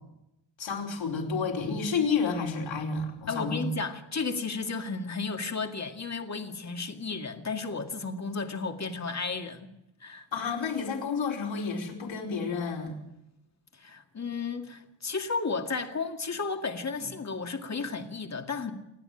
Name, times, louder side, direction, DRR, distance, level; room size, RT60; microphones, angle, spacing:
voice 1, 0.6-3.6 10.3-12.9, left 5 dB, 65° left, 4.9 m, -30 dB
voice 2, 3.3-9.7 10.0-10.3 13.7-18.7, left 4 dB, 35° left, 2.2 m, -33 dB
27.5 x 9.9 x 10.0 m
wide cardioid pair, 120°, 48 cm